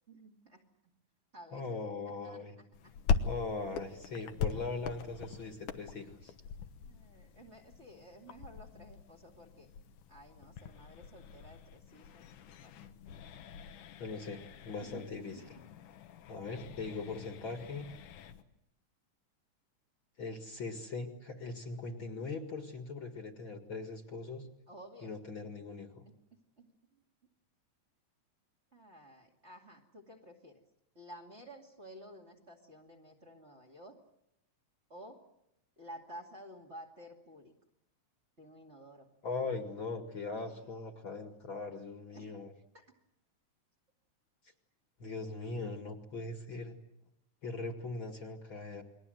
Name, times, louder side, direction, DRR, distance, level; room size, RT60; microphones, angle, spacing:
voice 1, 0.1-0.7 1.3-1.8 2.2-2.9 6.8-9.7 10.1-12.3 12.6-12.7 14.8-15.6 24.7-25.2 25.4-25.5 26.6-27.0 28.7-30.6 30.9-34.0 34.9-35.2 35.8-37.5 38.4-39.1 40.3-40.7 42.1-42.3 42.7-42.8, right 1 dB, 25° right, 2 dB, 2.4 m, -53 dB
voice 2, 1.5-2.6 3.2-6.3 14.0-15.4 16.3-17.9 20.2-24.5 25.0-26.0 39.2-42.5 45.0-46.7 47.4-48.8, left 3 dB, 45° left, 5 dB, 2.4 m, -40 dB
sound 1, 2.7-18.4, left 6 dB, 85° left, 2.7 m, -41 dB
29.5 x 22.0 x 7.9 m, 0.82 s
omnidirectional pair, 3.5 m